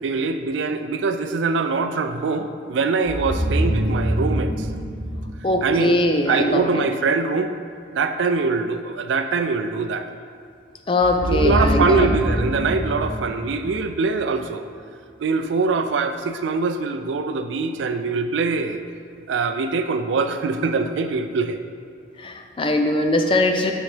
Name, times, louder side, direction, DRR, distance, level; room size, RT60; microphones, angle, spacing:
voice 1, 0.0-4.7 5.6-6.0 6.3-7.5 7.9-10.1 11.3-14.7 15.2-18.8 19.3-21.6, right 4 dB, 85° right, 8 dB, 0.4 m, -23 dB
sound 1, 3.1-6.0 11.0-14.2, equal, 45° right, 0.8 m, -25 dB
voice 2, 5.4-6.7 10.9-12.1 22.2-23.7, left 1 dB, 30° left, 4 dB, 0.4 m, -21 dB
9.3 x 4.1 x 3.3 m, 2.2 s
head